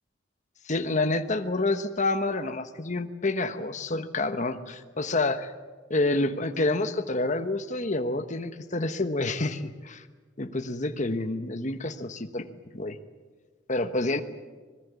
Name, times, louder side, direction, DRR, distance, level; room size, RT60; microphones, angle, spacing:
voice 1, 0.6-5.5 5.9-10.0 10.4-12.5 12.7-13.0 13.7-14.2, left 2 dB, 40° left, 8 dB, 1.1 m, -28 dB
25.5 x 20.0 x 8.3 m, 1.4 s
head